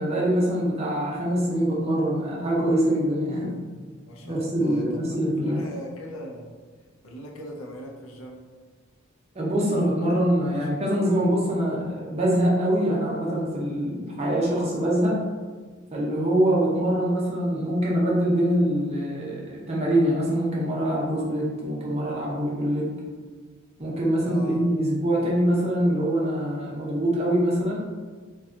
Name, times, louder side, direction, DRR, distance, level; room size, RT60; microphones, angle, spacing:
voice 1, 0.0-3.5 4.2-5.6 9.3-15.2 15.9-22.9 23.8-27.8, right 1 dB, 30° right, -4 dB, 0.7 m, -24 dB
voice 2, 4.0-6.5 7.0-8.4 10.5-10.7 11.2-11.3 24.2-24.6, equal, 75° left, 1 dB, 0.5 m, -40 dB
2.7 x 2.3 x 3.6 m, 1.4 s
head